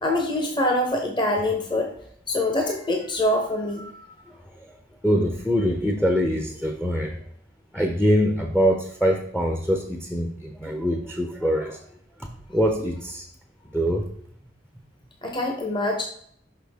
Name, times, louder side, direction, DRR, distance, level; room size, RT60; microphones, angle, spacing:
voice 1, 0.0-1.9 2.3-4.1 15.2-16.0, left 1 dB, 25° left, 2 dB, 0.9 m, -24 dB
voice 2, 4.3-4.7 5.0-7.2 7.7-11.8 12.2-13.3 13.7-14.1, equal, 5° left, 3 dB, 0.6 m, -24 dB
5.9 x 5.7 x 3.5 m, 0.66 s
head